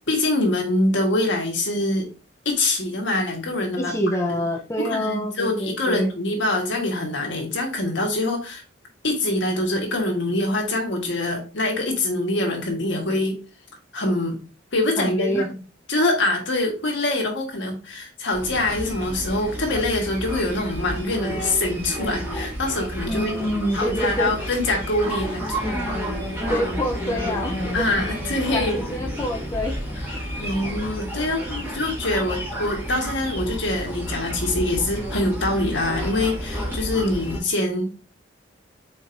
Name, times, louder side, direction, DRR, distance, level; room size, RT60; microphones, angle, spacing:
voice 1, 0.1-2.1 2.4-3.9 4.8-8.6 9.0-13.4 13.9-14.4 14.7-15.4 15.9-23.3 23.7-25.7 27.7-28.8 30.4-38.0, left 2 dB, 65° left, 2 dB, 1.4 m, -24 dB
voice 2, 3.8-6.1 15.0-15.5 23.1-24.3 26.5-27.8 28.5-29.7, equal, 15° left, 1 dB, 0.6 m, -26 dB
sound 1, 18.3-37.4, equal, 10° right, 1.9 m, -30 dB
4.4 x 4.4 x 2.6 m, 0.33 s
head